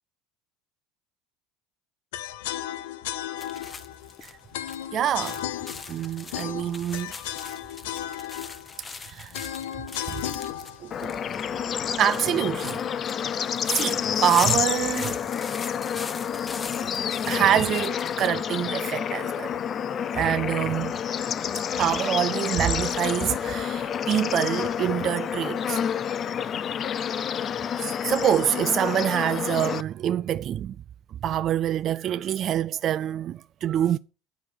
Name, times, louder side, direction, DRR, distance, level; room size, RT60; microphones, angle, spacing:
sound 1, 2.1-12.2, left 11 dB, 80° left, 0.8 m, -35 dB
sound 2, 3.4-18.3, left 4 dB, 25° left, 1.0 m, -41 dB
voice 1, 4.9-5.4 5.9-7.1 9.1-9.3 10.1-10.2 10.8-11.1 11.6-11.7 12.0-12.8 13.7-15.2 17.3-19.5 20.1-20.9 21.8-25.8 27.4-27.5 28.1-30.8 31.2-34.0, right 10 dB, 50° right, 0.4 m, -25 dB
Bird / Insect / Frog, 10.9-29.8, left 8 dB, 45° left, 0.6 m, -29 dB
10.5 x 4.8 x 7.8 m
hypercardioid pair, 80°, 0 cm